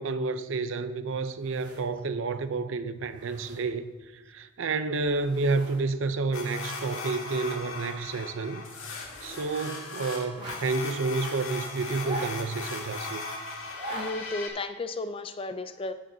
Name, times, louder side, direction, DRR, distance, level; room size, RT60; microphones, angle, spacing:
voice 1, 0.0-8.6 9.2-13.2, right 3 dB, 60° right, 0.5 m, -30 dB
sound 1, 1.4-2.1 2.5-2.6 3.0-3.9 5.0-5.8 6.1-6.2 6.8-7.6 8.0-8.1 9.0-9.6 10.2-10.9 11.8-12.7 13.6-14.1 14.5-14.6, right 2 dB, 25° right, 3.3 m, -42 dB
sound 2, 6.3-14.5, left 3 dB, 65° left, 1.8 m, -38 dB
voice 2, 13.9-15.9, left 2 dB, 25° left, 0.3 m, -34 dB
16.5 x 6.5 x 2.7 m
head